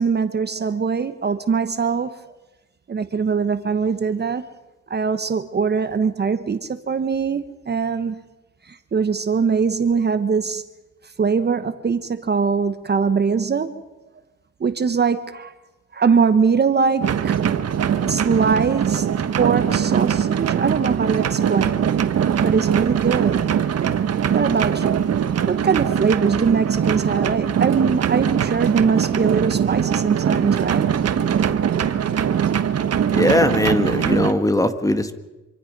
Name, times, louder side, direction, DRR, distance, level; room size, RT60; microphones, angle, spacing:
voice 1, 0.0-2.2 2.9-4.4 4.9-8.2 8.7-10.6 11.2-13.8 14.6-15.5 15.9-17.4 18.1-19.1 19.4-21.9 22.3-23.8 24.3-25.0 25.4-30.9, right 5 dB, 35° right, 1.1 m, -22 dB
sound 1, 17.0-34.3, right 8 dB, 55° right, 1.4 m, -21 dB
voice 2, 33.1-35.1, left 1 dB, 10° left, 1.8 m, -19 dB
26.5 x 24.5 x 5.4 m
cardioid pair, 90°, 30 cm